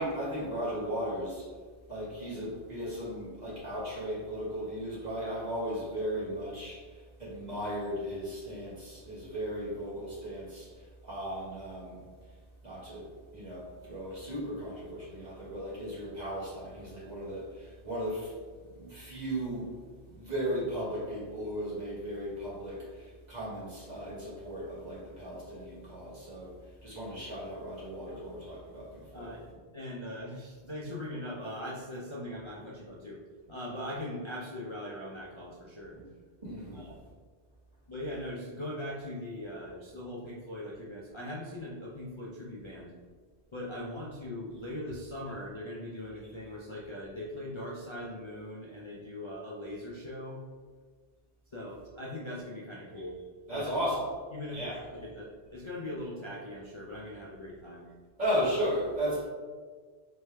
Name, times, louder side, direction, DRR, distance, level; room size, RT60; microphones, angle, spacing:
voice 1, 0.0-1.5 1.9-10.7 11.0-12.0 12.6-13.1 13.3-18.3 18.7-19.7 20.1-26.5 26.8-29.3 36.4-36.9 53.5-54.0 54.5-54.8 58.2-59.2, equal, 40° right, -8 dB, 1.6 m, -36 dB
voice 2, 29.1-29.4 29.7-33.2 33.5-36.0 36.7-37.0 37.9-42.9 43.5-50.4 51.5-53.2 53.5-53.8 54.3-55.3 55.5-57.9, left 1 dB, 35° left, -4 dB, 0.5 m, -40 dB
4.2 x 3.3 x 3.3 m, 1.5 s
omnidirectional pair, 1.1 m